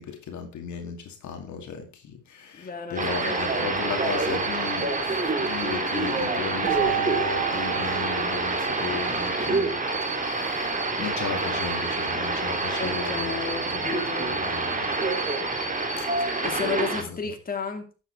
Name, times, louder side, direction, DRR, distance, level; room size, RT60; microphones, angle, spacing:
voice 1, 0.0-5.1 5.4-13.9 14.2-14.9 16.0-16.1 17.0-17.2, left 6 dB, 70° left, 2.5 m, -36 dB
voice 2, 2.5-3.9 12.8-14.4 16.2-18.0, left 5 dB, 30° left, 2.6 m, -33 dB
sound 1, 3.0-17.0, right 3 dB, 25° right, 2.9 m, -27 dB
Keyboard (musical), 6.6-9.3, right 14 dB, 85° right, 1.1 m, -31 dB
12.0 x 8.1 x 4.6 m
cardioid pair, 90°, 30 cm